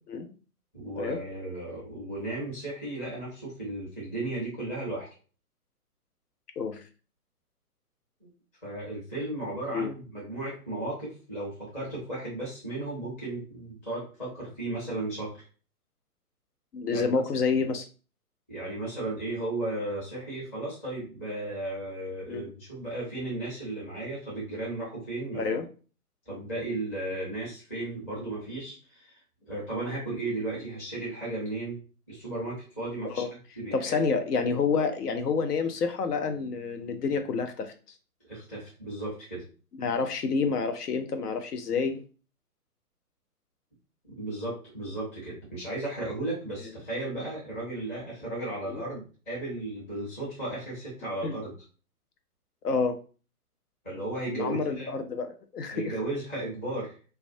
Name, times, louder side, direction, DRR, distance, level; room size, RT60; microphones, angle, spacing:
voice 1, 0.7-5.1 8.2-8.3 8.6-15.3 16.9-17.0 18.5-25.6 26.3-29.2 29.5-31.8 32.1-33.3 33.6-34.0 38.3-39.4 44.2-51.5 53.8-54.9 55.7-56.9, right 2 dB, 10° left, -8 dB, 0.5 m, -35 dB
voice 2, 16.7-17.9 22.3-22.4 25.4-25.6 33.0-33.3 33.7-37.7 39.8-42.0 48.7-48.8 51.2-51.4 52.6-53.0 54.3-55.9, left 5 dB, 80° left, 7 dB, 0.6 m, -28 dB
2.3 x 2.1 x 2.6 m, 0.37 s
figure-of-eight pair, 135°, 46 cm